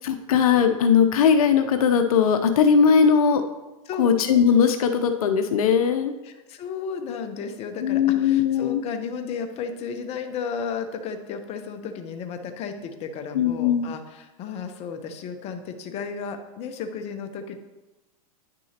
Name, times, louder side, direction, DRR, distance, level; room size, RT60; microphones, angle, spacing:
voice 1, 0.1-3.4 4.0-6.1 7.8-8.8 13.3-13.9, left 7 dB, 75° left, 7 dB, 0.7 m, -19 dB
voice 2, 6.2-17.6, left 6 dB, 35° left, 6 dB, 0.8 m, -33 dB
9.6 x 6.2 x 2.9 m, 1.0 s
hypercardioid pair, 120°, 19 cm